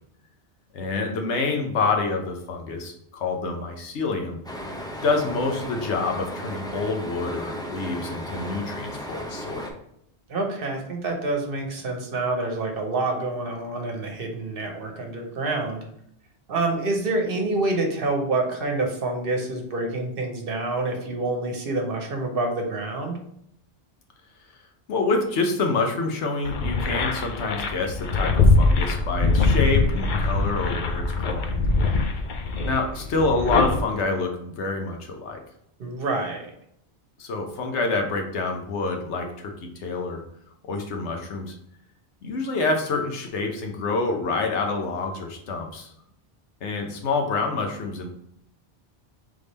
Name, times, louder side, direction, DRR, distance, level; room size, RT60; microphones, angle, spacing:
voice 1, 0.7-4.4 5.0-9.8 24.9-31.6 32.6-35.4 37.2-40.2 40.7-41.5 42.2-45.9 46.6-48.1, left 3 dB, 85° left, 3 dB, 1.1 m, -27 dB
sound 1, 4.4-9.7, equal, 5° left, 0.4 m, -35 dB
voice 2, 10.3-15.8 16.5-23.2 35.8-36.5, right 2 dB, 60° right, 2 dB, 1.1 m, -27 dB
sound 2, 26.4-33.8, left 3 dB, 60° left, 0.6 m, -22 dB
3.6 x 3.4 x 4.1 m, 0.73 s
omnidirectional pair, 1.1 m